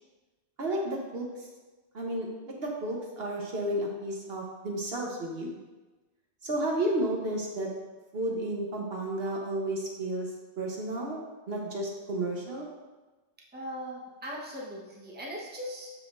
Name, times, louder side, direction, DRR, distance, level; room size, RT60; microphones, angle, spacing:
voice 1, 0.6-1.5 1.9-2.3 2.6-5.6 6.4-7.7 8.1-10.3 10.6-12.7, right 1 dB, 60° right, -1 dB, 1.2 m, -32 dB
voice 2, 13.5-15.9, equal, 10° right, -4 dB, 1.0 m, -39 dB
12.5 x 4.2 x 2.5 m, 1.2 s
omnidirectional pair, 1.2 m